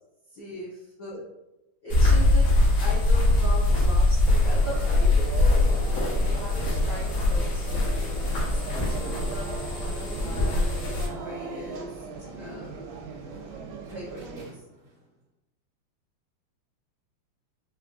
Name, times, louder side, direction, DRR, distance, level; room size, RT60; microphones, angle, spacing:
voice 1, 0.3-0.7 1.0-1.2 1.8-2.5 2.8-5.6 6.0-12.1 12.4-13.0 13.9-14.6, right 1 dB, 85° left, -9 dB, 1.0 m, -40 dB
sound 1, 1.9-11.1, left 2 dB, 60° left, 1.4 m, -22 dB
sound 2, 4.6-14.4, right 5 dB, 85° right, 2.0 m, -39 dB
sound 3, 8.6-15.0, right 2 dB, 45° right, 1.4 m, -46 dB
5.5 x 2.3 x 2.5 m, 0.96 s
omnidirectional pair, 3.4 m